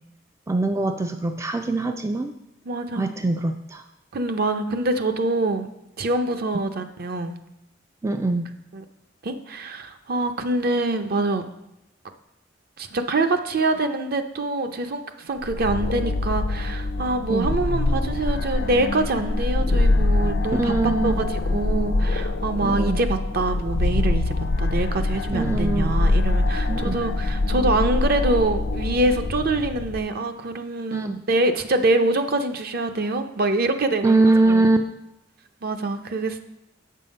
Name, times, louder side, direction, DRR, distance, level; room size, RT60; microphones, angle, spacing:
voice 1, 0.5-2.4 2.9-3.8 6.5-6.6 8.0-8.5 17.3-17.5 20.6-21.3 22.6-23.0 25.3-25.9 26.7-26.9 30.9-31.2 34.0-34.8, right 2 dB, 15° right, 6 dB, 0.3 m, -22 dB
voice 2, 2.7-3.1 4.1-5.7 6.0-7.4 8.7-8.8 9.2-11.4 12.8-20.7 21.0-34.1 34.4-34.7 35.6-36.4, right 2 dB, 55° right, 8 dB, 0.6 m, -25 dB
sound 1, 15.4-30.0, left 2 dB, 70° left, 0.5 m, -24 dB
7.6 x 5.5 x 5.3 m, 0.87 s
head